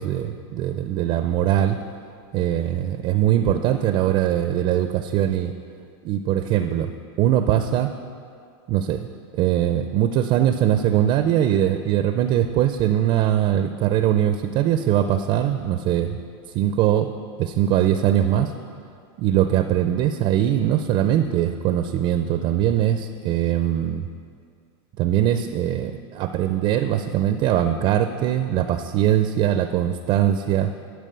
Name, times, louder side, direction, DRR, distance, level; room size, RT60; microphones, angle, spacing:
voice 1, 0.0-1.8 2.3-5.5 6.0-6.9 7.2-7.9 8.7-9.1 9.3-16.2 16.5-17.1 17.4-18.5 19.2-24.1 25.0-30.7, right 11 dB, 35° right, 9 dB, 0.4 m, -21 dB
11.0 x 4.8 x 6.7 m, 2.3 s
supercardioid pair, 145°, 14 cm